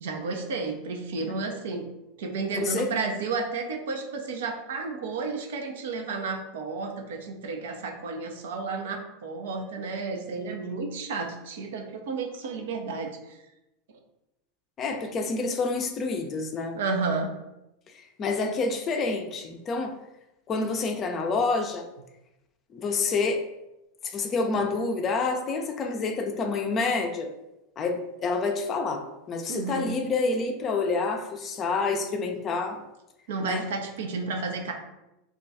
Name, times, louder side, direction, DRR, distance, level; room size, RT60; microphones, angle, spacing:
voice 1, 0.0-1.9 2.2-13.4 16.7-17.4 29.5-29.9 33.3-34.7, right 4 dB, 75° right, 3 dB, 0.5 m, -32 dB
voice 2, 14.8-16.8 18.2-20.0 20.5-21.9 22.7-23.4 24.0-27.3 27.8-32.8 33.4-33.6, left 4 dB, 35° left, 5 dB, 0.4 m, -28 dB
2.3 x 2.3 x 3.9 m, 0.93 s
hypercardioid pair, 95°, 0 cm